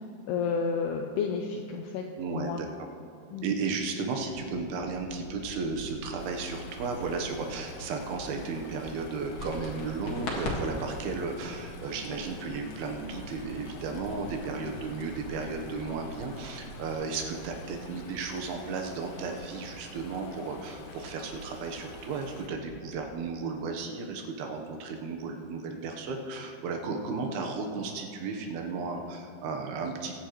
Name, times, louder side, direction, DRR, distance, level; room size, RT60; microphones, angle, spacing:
voice 1, 0.3-2.6 3.3-3.5, left 5 dB, 85° left, 3 dB, 2.3 m, -31 dB
voice 2, 2.2-2.7 3.4-30.1, right 4 dB, 70° right, 3 dB, 2.6 m, -34 dB
sound 1, 4.3-23.0, right 2 dB, 90° right, 1.3 m, -47 dB
Chatter / Stream, 6.2-22.5, left 4 dB, 70° left, 2.7 m, -49 dB
sound 2, 9.4-17.0, left 2 dB, 50° left, 1.9 m, -42 dB
22.0 x 9.0 x 3.1 m, 2.7 s
omnidirectional pair, 5.4 m